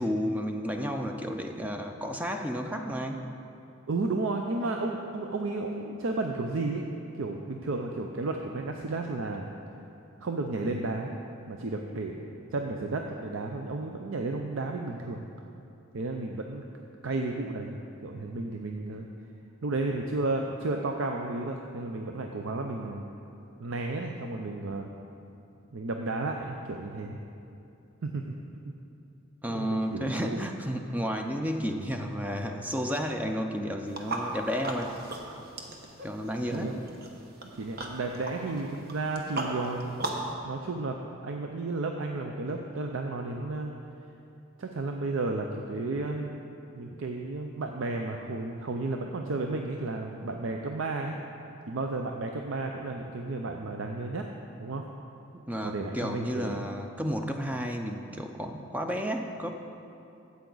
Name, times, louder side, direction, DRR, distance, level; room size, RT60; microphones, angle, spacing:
voice 1, 0.0-3.2 29.4-35.0 36.0-36.8 55.3-59.5, equal, 5° right, 4 dB, 0.4 m, -32 dB
voice 2, 3.9-6.9 7.1-9.5 10.2-11.1 11.5-15.3 15.9-16.6 17.0-19.1 19.6-23.0 23.6-24.9 25.7-27.2 28.0-28.2 28.5-28.7 29.5-30.4 36.5-36.8 37.5-40.2 40.4-43.7 44.6-46.4 46.7-51.2 51.7-54.3 54.6-54.8 55.6-56.7, right 2 dB, 75° right, 3 dB, 0.5 m, -33 dB
sound 1, 33.9-40.3, right 2 dB, 50° right, 1.0 m, -38 dB
13.0 x 8.3 x 3.9 m, 2.7 s
head